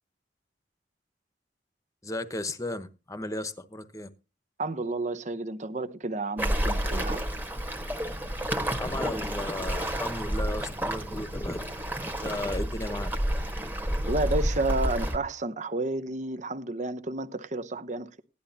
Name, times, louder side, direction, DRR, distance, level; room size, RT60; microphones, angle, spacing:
voice 1, 2.0-4.1 8.7-11.6 12.0-13.1, left 1 dB, 20° left, 1.0 m, -35 dB
voice 2, 4.6-7.2 14.1-18.2, right 2 dB, 40° right, 0.8 m, -31 dB
Waves surf, 6.4-15.2, equal, 10° right, 1.4 m, -30 dB
17.0 x 11.0 x 2.8 m
head